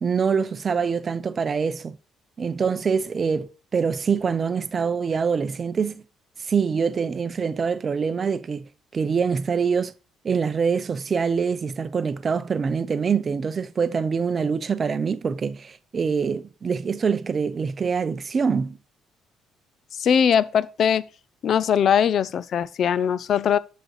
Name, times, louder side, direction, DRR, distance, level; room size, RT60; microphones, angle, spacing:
voice 1, 0.0-2.0 2.4-6.0 6.4-9.9 10.2-18.8, right 6 dB, 35° right, 0.6 m, -25 dB
voice 2, 19.9-21.1 21.4-23.6, left 8 dB, 50° left, 0.4 m, -21 dB
7.7 x 7.6 x 3.1 m
cardioid pair, 120°, 0 cm